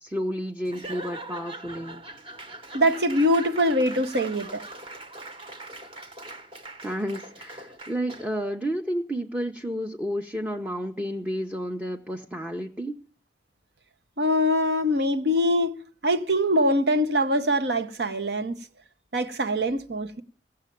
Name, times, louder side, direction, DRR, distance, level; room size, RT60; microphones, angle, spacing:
voice 1, 0.0-2.0 6.8-13.0, equal, 10° right, 0.7 m, -31 dB
Laughter / Applause / Crowd, 0.6-8.4, right 2 dB, 30° right, 1.2 m, -41 dB
voice 2, 2.7-4.6 14.2-15.8 16.0-18.6 19.1-20.2, equal, 70° right, 1.1 m, -23 dB
16.5 x 6.6 x 9.2 m
head